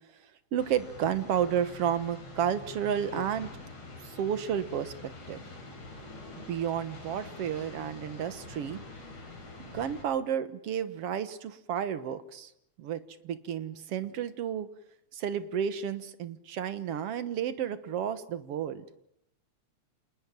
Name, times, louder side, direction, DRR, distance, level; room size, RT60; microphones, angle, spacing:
voice 1, 0.5-3.5 4.0-5.4 6.5-8.8 9.6-12.5 12.8-14.7 15.1-18.8, right 9 dB, 60° right, 12 dB, 2.1 m, -32 dB
sound 1, 0.6-10.0, left 2 dB, 55° left, 6.1 m, -46 dB
28.0 x 20.5 x 7.5 m, 0.75 s
omnidirectional pair, 3.4 m